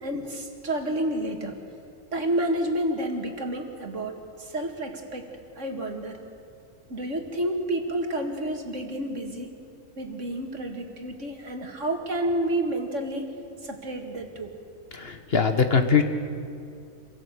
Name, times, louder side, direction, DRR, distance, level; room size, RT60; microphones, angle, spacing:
voice 1, 0.0-1.6 2.1-5.3 5.6-6.2 6.9-9.6 10.0-13.3 13.6-14.5, right 1 dB, 65° right, 4 dB, 2.4 m, -30 dB
voice 2, 14.9-16.0, left 5 dB, 50° left, 7 dB, 1.5 m, -21 dB
26.0 x 16.5 x 8.3 m, 2.5 s
omnidirectional pair, 1.4 m